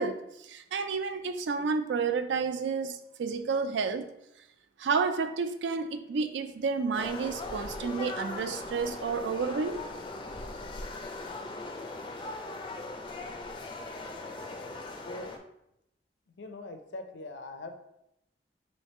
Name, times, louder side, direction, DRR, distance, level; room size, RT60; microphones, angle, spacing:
voice 1, 0.0-4.1 4.8-9.8, right 5 dB, 85° right, 0.4 m, -30 dB
sound 1, 6.9-15.4, left 2 dB, 30° left, 0.4 m, -39 dB
voice 2, 16.4-17.7, left 2 dB, 90° left, 0.5 m, -41 dB
3.2 x 3.1 x 4.2 m
head